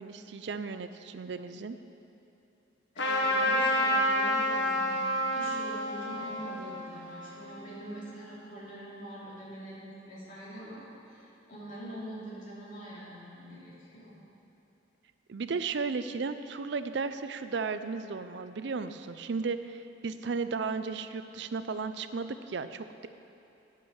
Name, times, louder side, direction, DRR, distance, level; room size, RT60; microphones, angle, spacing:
voice 1, 0.0-1.8 15.3-23.1, right 4 dB, 65° right, 11 dB, 0.5 m, -35 dB
voice 2, 2.9-14.1, equal, 45° left, -7 dB, 2.8 m, -44 dB
Trumpet, 3.0-8.0, equal, 70° left, 1.3 m, -29 dB
9.6 x 8.4 x 6.3 m, 2.9 s
head